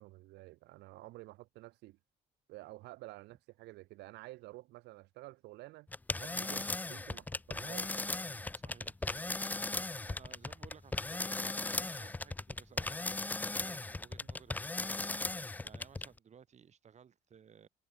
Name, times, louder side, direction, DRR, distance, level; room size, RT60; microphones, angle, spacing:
voice 1, 0.0-2.0 2.5-5.9 6.2-8.4 14.2-14.3, right 19 dB, 85° right, 6.2 m, -51 dB
sound 1, 5.9-16.2, left 2 dB, 10° left, 0.4 m, -37 dB
voice 2, 8.5-17.7, right 7 dB, 45° right, 6.2 m, -59 dB
cardioid pair, 110°, 17 cm